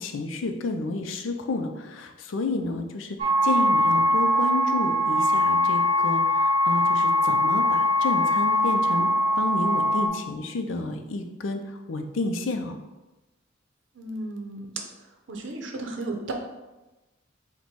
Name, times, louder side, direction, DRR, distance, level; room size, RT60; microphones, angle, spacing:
voice 1, 0.0-9.1 9.4-12.8, left 2 dB, 85° left, 6 dB, 0.5 m, -30 dB
sound 1, 3.2-10.1, left 1 dB, 30° right, 0.7 m, -22 dB
voice 2, 13.9-14.7 15.3-16.3, right 2 dB, 75° right, 3 dB, 0.6 m, -34 dB
4.1 x 2.2 x 4.5 m, 1.1 s
head